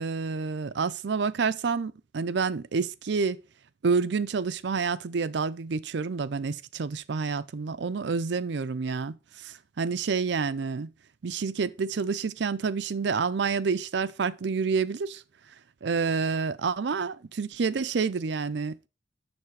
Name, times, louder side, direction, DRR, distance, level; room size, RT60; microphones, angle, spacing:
voice 1, 0.0-3.4 3.8-10.9 11.2-15.2 15.8-18.9, right 5 dB, 70° right, 0.5 m, -28 dB
7.2 x 6.7 x 4.7 m
head